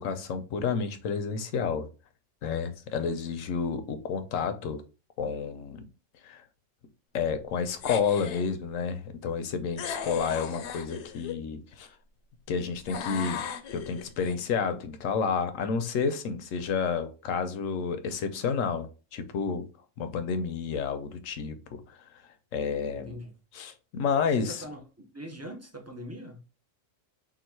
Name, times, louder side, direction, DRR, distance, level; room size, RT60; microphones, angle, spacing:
voice 1, 0.0-1.9 2.4-4.8 5.2-5.8 6.2-6.4 7.1-11.9 12.5-13.4 13.7-19.7 20.0-21.8 22.5-23.2 23.5-24.6, left 6 dB, 85° left, 1.0 m, -30 dB
sound 1, 7.8-8.5 9.8-11.4 12.9-14.3, left 7 dB, 65° left, 0.8 m, -37 dB
voice 2, 22.9-23.3 24.3-26.4, equal, 20° right, 0.4 m, -42 dB
3.8 x 2.4 x 4.4 m
omnidirectional pair, 1.3 m